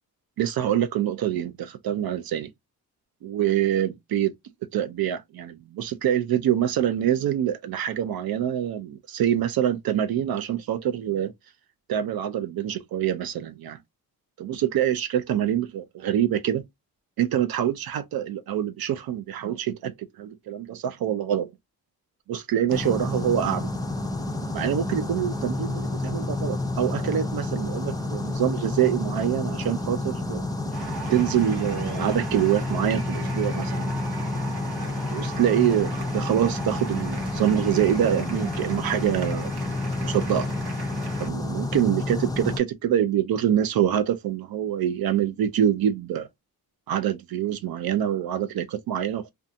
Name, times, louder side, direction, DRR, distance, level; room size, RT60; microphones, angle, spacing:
voice 1, 0.4-2.5 3.2-4.3 4.7-11.3 11.9-13.8 14.4-16.6 17.2-21.5 22.3-23.7 24.5-30.4 31.1-33.9 35.1-39.5 40.0-40.5 41.2-46.3 46.9-49.3, right 10 dB, 70° right, 0.5 m, -25 dB
sound 1, 22.7-42.6, left 2 dB, 10° left, 0.4 m, -29 dB
sound 2, 30.7-41.3, right 4 dB, 85° right, 1.0 m, -40 dB
2.5 x 2.3 x 2.5 m
cardioid pair, 110°, 38 cm